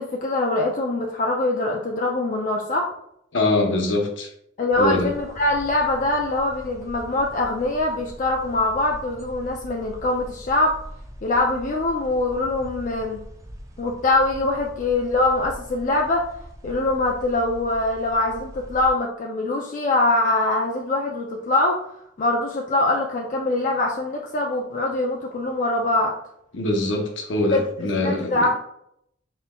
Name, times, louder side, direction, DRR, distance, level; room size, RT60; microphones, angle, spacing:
voice 1, 0.0-2.9 4.6-10.8 11.2-13.2 13.8-16.3 16.6-21.8 22.2-26.1 27.5-28.6, left 2 dB, 40° left, 0 dB, 0.4 m, -23 dB
voice 2, 3.3-4.3 4.8-5.1 26.5-28.4, left 2 dB, 70° left, 3 dB, 0.8 m, -23 dB
sound 1, 4.7-18.9, equal, 15° right, 0.5 m, -42 dB
4.2 x 4.1 x 2.3 m, 0.73 s
head